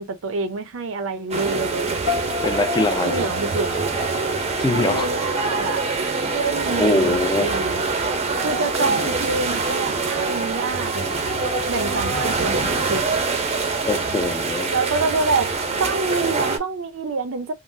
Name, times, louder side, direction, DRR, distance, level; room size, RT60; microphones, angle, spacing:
voice 1, 0.0-2.0 3.0-3.7 4.8-5.9 6.3-7.8 8.4-11.3 11.7-13.0 14.7-17.5, right 4 dB, 75° right, 0.6 m, -26 dB
sound 1, 1.3-16.6, right 3 dB, 30° right, 0.5 m, -24 dB
sound 2, 2.1-5.1, left 6 dB, 65° left, 1.0 m, -32 dB
voice 2, 2.4-3.3 4.6-5.1 5.4-5.5 6.7-7.5 13.8-14.7, left 2 dB, 20° left, 0.5 m, -23 dB
3.6 x 2.0 x 2.6 m
head